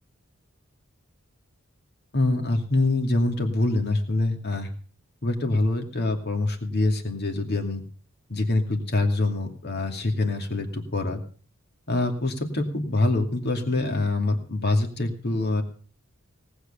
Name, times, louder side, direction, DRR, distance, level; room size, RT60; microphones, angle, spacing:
voice 1, 2.1-4.7 5.2-7.8 8.3-11.2 11.9-15.6, left 2 dB, 50° left, 5 dB, 2.5 m, -25 dB
18.5 x 8.2 x 6.8 m, 0.42 s
head